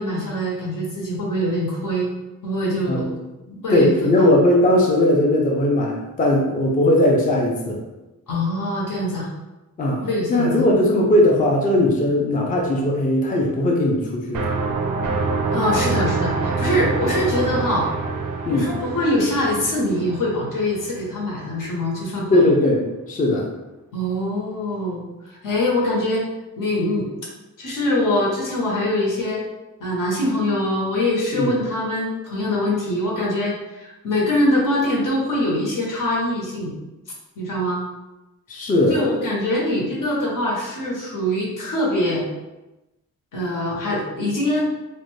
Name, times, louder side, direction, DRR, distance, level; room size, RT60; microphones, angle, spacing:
voice 1, 0.0-2.1 2.4-3.1 3.6-3.9 8.3-9.3 10.0-10.7 15.5-17.9 18.5-22.4 23.9-26.3 26.6-27.1 27.6-29.4 29.8-36.7 37.4-37.8 38.9-42.3 43.3-44.7, left 1 dB, 80° left, -3 dB, 0.8 m, -23 dB
voice 2, 3.5-7.8 9.8-10.0 10.3-14.5 18.5-18.8 22.3-23.5 31.3-31.6 38.5-39.0, left 1 dB, 25° left, -1 dB, 0.4 m, -18 dB
sound 1, 14.3-21.1, right 4 dB, 85° right, 0.5 m, -26 dB
2.5 x 2.1 x 3.1 m, 1.0 s
wide cardioid pair, 140°, 32 cm